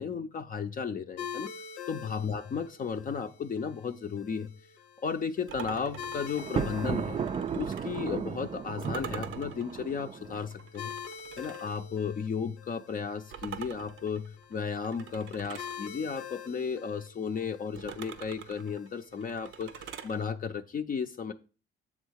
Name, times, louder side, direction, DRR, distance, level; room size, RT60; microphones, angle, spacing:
voice 1, 0.0-1.5 1.9-4.5 5.0-7.2 7.5-11.0 11.4-21.3, left 6 dB, 45° left, 6 dB, 0.6 m, -34 dB
sound 1, 1.2-20.3, left 8 dB, 85° left, 0.8 m, -47 dB
sound 2, 5.5-8.1 8.8-11.8 13.3-15.8 17.7-20.2, right 8 dB, 75° right, 0.7 m, -45 dB
Thunder, 6.3-10.5, right 7 dB, 30° right, 0.4 m, -34 dB
7.0 x 3.8 x 6.3 m, 0.35 s
cardioid pair, 90°, 20 cm